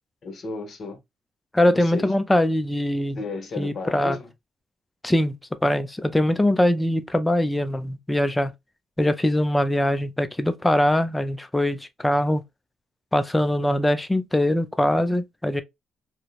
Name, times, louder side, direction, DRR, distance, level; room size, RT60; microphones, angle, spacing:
voice 1, 0.2-1.0 1.7-2.1 3.1-4.3, left 3 dB, 50° left, 0.9 m, -34 dB
voice 2, 1.5-3.2 3.6-4.2 5.0-5.3 5.6-8.5 9.0-12.4 13.1-15.6, left 1 dB, 10° left, 0.4 m, -22 dB
2.7 x 2.0 x 2.2 m
cardioid pair, 90°, 0 cm